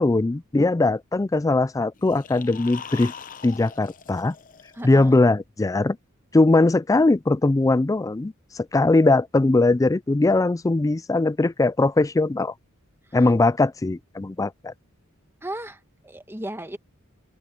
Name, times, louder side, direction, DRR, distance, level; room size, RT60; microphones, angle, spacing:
voice 1, 0.0-3.1 3.4-4.3 4.8-6.0 6.3-12.5 13.1-14.7, left 2 dB, 15° left, 0.3 m, -20 dB
sound 1, 2.0-5.1, left 7 dB, 40° left, 0.8 m, -42 dB
voice 2, 4.7-5.2 13.1-13.3 15.4-16.8, right 1 dB, 10° right, 1.5 m, -36 dB
open air
head